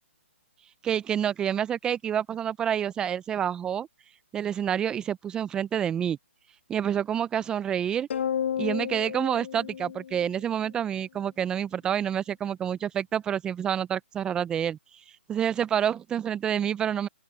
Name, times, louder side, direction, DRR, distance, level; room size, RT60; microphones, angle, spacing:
voice 1, 0.8-3.9 4.3-6.2 6.7-8.1 8.6-14.8 15.3-17.1, right 9 dB, 10° right, 0.4 m, -28 dB
sound 1, 8.1-10.7, left 8 dB, 60° left, 1.1 m, -32 dB
open air
hypercardioid pair, 150°, 7 cm